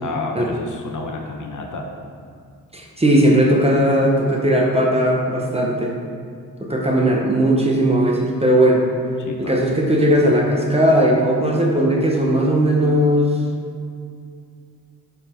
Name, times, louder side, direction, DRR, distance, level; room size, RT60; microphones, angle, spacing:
voice 1, 0.0-1.9 9.2-9.6, left 3 dB, 55° left, 2 dB, 0.9 m, -30 dB
voice 2, 2.7-5.9 6.6-8.8 9.4-13.4, right 1 dB, 15° right, -1 dB, 0.9 m, -17 dB
6.3 x 5.6 x 4.4 m, 2.3 s
wide cardioid pair, 120°, 37 cm